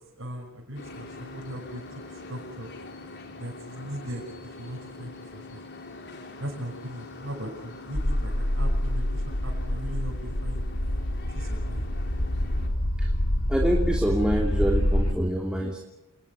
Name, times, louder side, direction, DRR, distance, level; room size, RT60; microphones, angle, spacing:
voice 1, 0.2-1.8 2.1-2.7 3.4-5.7 6.4-10.6 11.3-11.9, equal, 70° right, -3 dB, 5.9 m, -39 dB
sound 1, 0.7-12.7, left 3 dB, 55° left, 4.1 m, -44 dB
sound 2, 7.9-15.1, left 1 dB, 80° left, 2.4 m, -26 dB
voice 2, 13.5-15.8, equal, 5° right, -1 dB, 2.9 m, -26 dB
28.0 x 20.5 x 7.4 m, 0.94 s
head